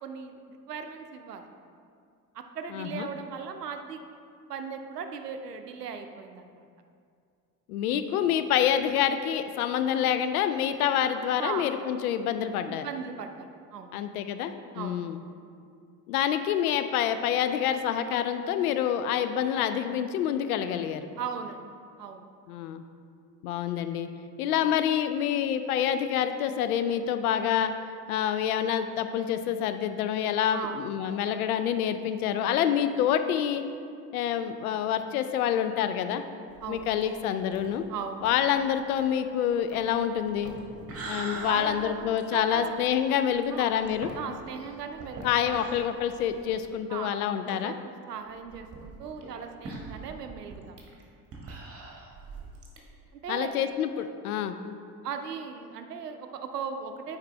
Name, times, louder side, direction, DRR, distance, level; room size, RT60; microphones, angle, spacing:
voice 1, 0.0-1.5 2.3-4.1 4.5-6.6 11.4-11.7 12.7-14.0 14.7-15.1 21.2-21.7 22.0-22.2 30.5-30.8 36.6-36.9 37.9-38.3 41.4-42.7 43.5-43.7 44.1-45.8 46.9-50.9 53.1-53.5 55.0-57.2, right 6 dB, 85° right, 6 dB, 0.6 m, -38 dB
voice 2, 2.7-3.1 7.7-12.9 13.9-15.2 16.1-21.1 22.5-22.8 23.4-24.1 24.4-27.7 28.1-33.6 34.1-36.2 36.7-37.8 38.2-40.5 41.1-44.1 45.2-47.7 53.3-54.5, left 9 dB, 70° left, 9 dB, 0.6 m, -27 dB
sound 1, 36.5-46.7 47.1-47.2 47.5-47.6 48.3-52.8, right 3 dB, 30° right, 1.5 m, -44 dB
9.0 x 4.9 x 3.2 m, 2.4 s
figure-of-eight pair, 60°, 46 cm